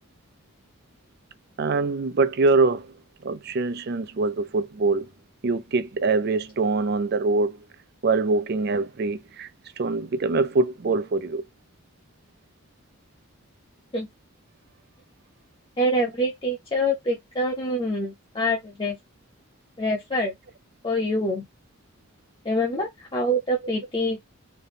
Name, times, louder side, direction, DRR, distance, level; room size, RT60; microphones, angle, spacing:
voice 1, 1.6-2.9 3.2-5.1 5.4-7.6 8.0-9.5 9.8-11.4, right 3 dB, 50° right, 0.4 m, -24 dB
voice 2, 15.8-19.0 19.8-20.3 20.8-21.4 22.4-24.2, equal, 25° left, 0.7 m, -25 dB
4.1 x 2.2 x 3.4 m
head